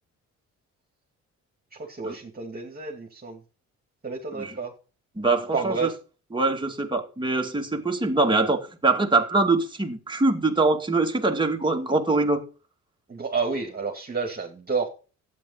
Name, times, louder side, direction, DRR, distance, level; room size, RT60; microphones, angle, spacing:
voice 1, 1.7-3.4 4.0-4.7 5.5-5.9 13.1-14.9, right 4 dB, 30° right, 2.5 m, -30 dB
voice 2, 5.2-5.9 6.3-12.4, right 3 dB, 15° right, 2.4 m, -23 dB
12.5 x 9.2 x 5.6 m
cardioid pair, 90°, 30 cm